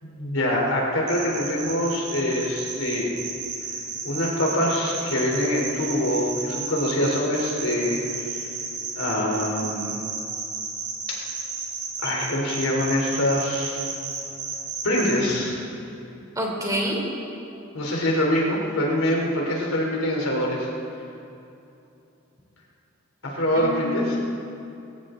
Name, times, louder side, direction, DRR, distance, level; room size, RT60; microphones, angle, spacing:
voice 1, 0.0-3.1 4.0-8.4 8.9-10.0 12.0-13.8 14.8-15.6 17.7-20.7 23.2-24.2, left 1 dB, 85° left, -2 dB, 3.5 m, -24 dB
sound 1, 1.1-15.1, right 5 dB, 60° right, 5.0 m, -32 dB
voice 2, 16.3-17.0 23.6-24.2, equal, 15° right, -2 dB, 3.3 m, -27 dB
21.0 x 17.5 x 3.9 m, 2.8 s
head